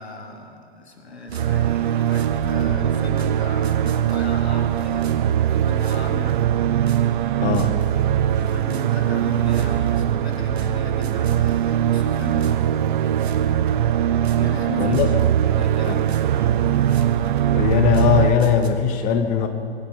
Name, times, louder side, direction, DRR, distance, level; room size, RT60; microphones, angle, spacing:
voice 1, 0.0-5.1 5.4-6.4 7.0-12.9 14.3-16.5, left 2 dB, 75° left, 4 dB, 2.5 m, -37 dB
sound 1, 1.3-18.3, right 11 dB, 50° right, 0.6 m, -21 dB
sound 2, 1.3-18.7, right 4 dB, 70° right, 1.6 m, -34 dB
voice 2, 14.8-15.1 15.9-16.0 17.5-19.5, left 8 dB, 25° left, 7 dB, 0.8 m, -20 dB
23.5 x 8.1 x 6.6 m, 2.7 s
figure-of-eight pair, 110°, 33 cm